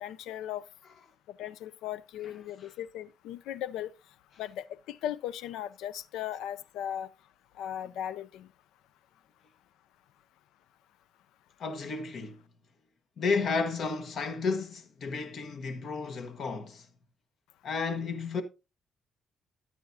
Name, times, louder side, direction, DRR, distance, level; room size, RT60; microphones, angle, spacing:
voice 1, 0.0-0.7 1.4-3.9 4.4-7.1 7.6-8.5, left 11 dB, 90° left, 0.4 m, -37 dB
voice 2, 11.6-12.4 13.2-16.9 17.6-18.4, left 4 dB, 60° left, 1.1 m, -32 dB
9.8 x 8.8 x 2.6 m
cardioid pair, 90°, 0 cm